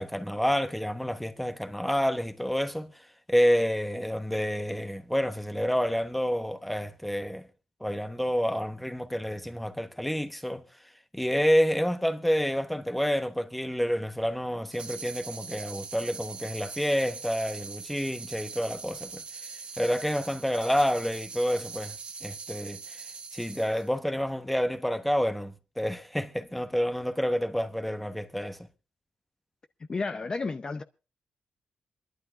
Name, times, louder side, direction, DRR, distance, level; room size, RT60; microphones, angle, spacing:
voice 1, 0.0-3.0 3.3-7.4 7.8-10.6 11.1-19.2 19.8-23.0 23.3-28.7, equal, ahead, 1.0 m, -28 dB
sound 1, 14.7-23.9, right 5 dB, 45° right, 1.9 m, -42 dB
voice 2, 29.8-30.8, left 3 dB, 30° left, 0.6 m, -32 dB
26.5 x 12.0 x 2.4 m
wide cardioid pair, 135°, 3 cm